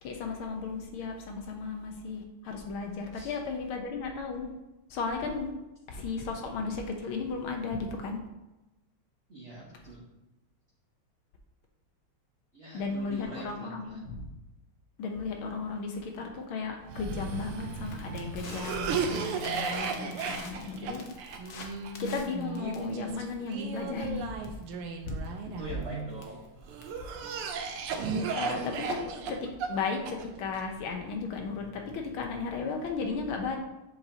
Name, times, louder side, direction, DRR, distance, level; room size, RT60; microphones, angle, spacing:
voice 1, 0.0-4.5 4.9-5.5 5.9-8.2 12.7-14.2 15.0-25.3 27.8-27.9 28.4-33.6, left 4 dB, 75° left, 3 dB, 1.7 m, -35 dB
voice 2, 9.3-10.1 12.5-14.1 25.2-26.4, right 2 dB, 40° right, -5 dB, 1.2 m, -44 dB
Cough, 16.9-26.1 26.7-30.6, right 5 dB, 90° right, 1.7 m, -35 dB
Crackle, 17.0-29.0, left 3 dB, 55° left, 1.3 m, -47 dB
7.9 x 6.4 x 2.8 m, 1.0 s
omnidirectional pair, 2.4 m